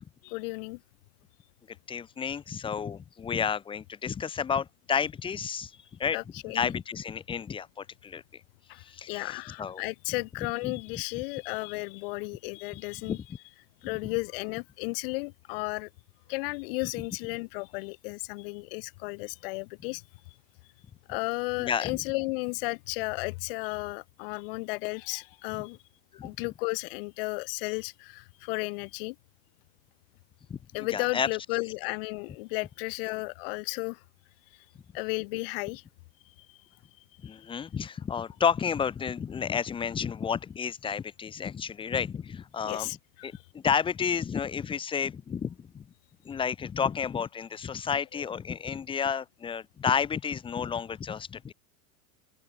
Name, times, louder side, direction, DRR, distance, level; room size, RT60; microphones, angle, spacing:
voice 1, 0.2-0.8 6.1-6.7 8.7-13.2 13.8-15.9 16.3-20.0 21.1-25.8 26.2-29.2 30.7-34.0 34.9-35.8 42.6-43.0 48.1-48.2, left 26 dB, 45° left, 0.7 m, -34 dB
voice 2, 1.7-6.2 6.5-8.4 8.8-9.8 10.6-10.7 12.7-12.8 13.1-13.3 13.9-14.0 21.6-22.0 26.1-26.3 30.5-31.3 37.2-42.9 43.2-45.9 46.2-51.5, left 7 dB, 10° left, 1.0 m, -31 dB
open air
supercardioid pair, 160°, 42 cm